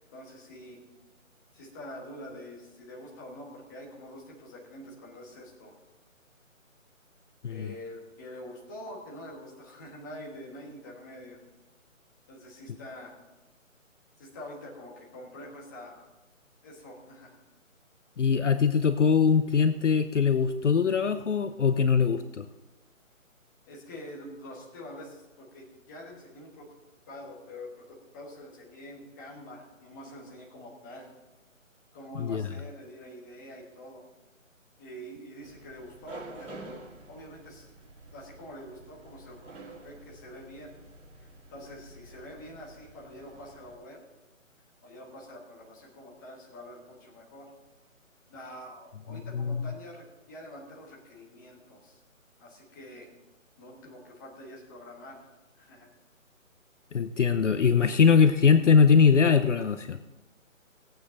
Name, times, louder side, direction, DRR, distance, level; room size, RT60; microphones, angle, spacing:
voice 1, 0.1-0.8 1.5-5.7 7.5-11.4 12.3-13.1 14.2-16.1 16.6-17.4 23.7-26.7 27.1-31.1 31.9-34.0 34.8-37.7 38.1-40.7 41.5-44.0 44.8-47.5 48.3-52.0 52.4-53.1 53.6-55.9, left 1 dB, 15° left, -4 dB, 1.6 m, -46 dB
voice 2, 18.2-22.4 32.2-32.4 49.3-49.6 56.9-60.0, left 6 dB, 60° left, 11 dB, 0.7 m, -22 dB
sound 1, 35.4-43.7, right 2 dB, 60° right, 3.8 m, -49 dB
17.0 x 8.8 x 4.0 m, 1.1 s
hypercardioid pair, 165°, 41 cm